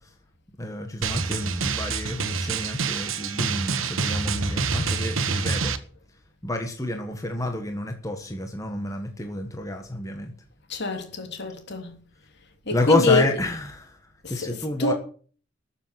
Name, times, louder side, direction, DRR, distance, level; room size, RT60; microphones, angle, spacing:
voice 1, 0.6-5.8 6.4-10.3 12.7-14.0 14.3-14.9, left 1 dB, 15° left, 1.4 m, -29 dB
Drum, 1.0-5.8, right 4 dB, 85° right, 1.3 m, -27 dB
voice 2, 10.7-11.9 12.7-13.2 14.2-14.9, left 4 dB, 60° left, 3.2 m, -25 dB
13.5 x 7.2 x 8.0 m
head